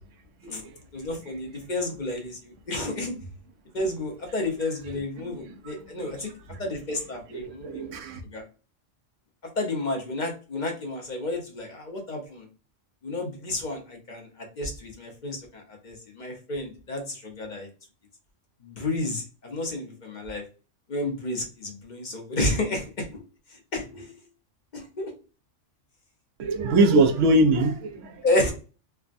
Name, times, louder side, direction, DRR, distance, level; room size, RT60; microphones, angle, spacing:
voice 1, 0.9-3.1 3.7-6.3 6.6-8.0 8.3-8.4 9.6-12.5 13.0-17.7 18.6-20.4 20.9-23.2 23.5-24.1 24.7-25.1 28.2-28.5, left 2 dB, 45° left, 0.7 m, -31 dB
voice 2, 5.2-5.7 6.2-6.6 7.3-8.2 26.4-28.3, right 2 dB, 75° right, 1.0 m, -23 dB
3.4 x 2.1 x 2.4 m
omnidirectional pair, 1.3 m